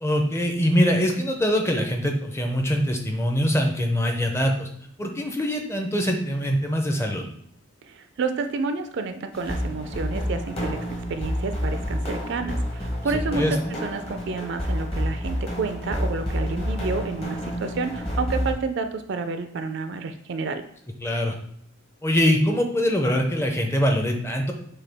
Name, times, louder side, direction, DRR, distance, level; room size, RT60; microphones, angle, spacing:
voice 1, 0.0-4.7 5.0-7.2 13.3-13.5 21.0-21.4 22.0-24.5, equal, 10° left, 2 dB, 0.5 m, -23 dB
voice 2, 7.9-10.8 11.1-20.6, right 4 dB, 55° right, 8 dB, 0.3 m, -30 dB
sound 1, 9.3-18.5, equal, 30° left, 0.9 m, -29 dB
6.5 x 2.3 x 3.4 m, 0.68 s
head